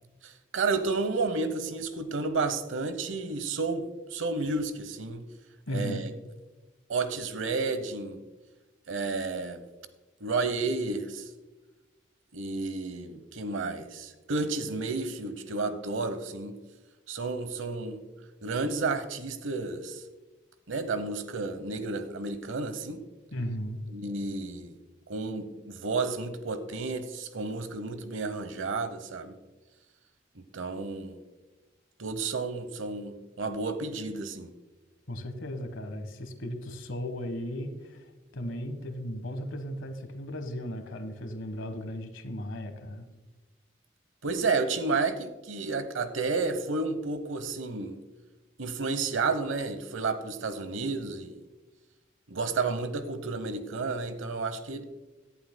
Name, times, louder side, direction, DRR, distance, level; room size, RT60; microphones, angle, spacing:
voice 1, 0.2-5.2 5.7-6.1 6.9-8.2 8.9-9.6 10.2-11.3 12.3-16.6 17.1-18.0 18.4-20.0 20.7-23.0 23.9-24.8 25.1-29.4 30.3-31.2 32.0-34.5 44.2-48.0 48.6-51.4 52.3-54.8, right 3 dB, 85° right, 11 dB, 0.9 m, -31 dB
voice 2, 5.7-6.0 23.3-23.8 35.1-43.1, equal, 85° left, 8 dB, 1.3 m, -36 dB
17.5 x 11.0 x 2.2 m, 1.2 s
head